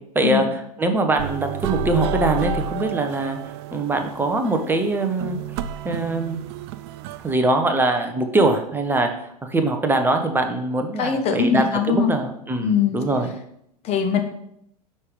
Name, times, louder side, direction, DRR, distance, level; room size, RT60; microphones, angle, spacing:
voice 1, 0.1-0.5 0.8-3.4 3.7-5.4 5.8-6.4 7.2-9.1 9.4-13.3, right 2 dB, 10° right, 6 dB, 0.8 m, -22 dB
sound 1, 1.2-7.3, right 6 dB, 40° right, 0.4 m, -30 dB
voice 2, 11.0-12.1 12.6-13.0 13.8-14.2, left 7 dB, 30° left, 5 dB, 0.9 m, -21 dB
5.5 x 4.8 x 5.0 m, 0.73 s
figure-of-eight pair, 90°, 21 cm